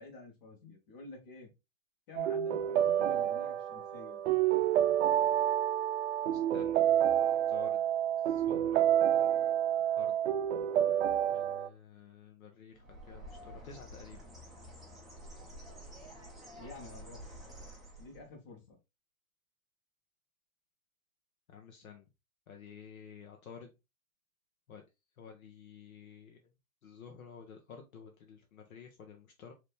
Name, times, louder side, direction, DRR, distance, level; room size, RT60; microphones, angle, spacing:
voice 1, 0.0-1.5 2.1-4.2 16.5-17.2 18.0-18.8, left 3 dB, 40° left, 0 dB, 2.0 m, -50 dB
sound 1, 2.2-11.7, right 10 dB, 55° right, 0.6 m, -29 dB
voice 2, 6.5-6.8 7.5-7.9 8.2-8.9 9.9-10.2 11.3-14.2 21.5-22.0 22.5-23.7 24.7-24.8 25.2-26.4 26.8-29.5, left 6 dB, 75° left, 3 dB, 1.2 m, -51 dB
Bird, 12.7-18.3, equal, ahead, 0.7 m, -49 dB
4.1 x 3.2 x 3.5 m, 0.24 s
hypercardioid pair, 155°, 42 cm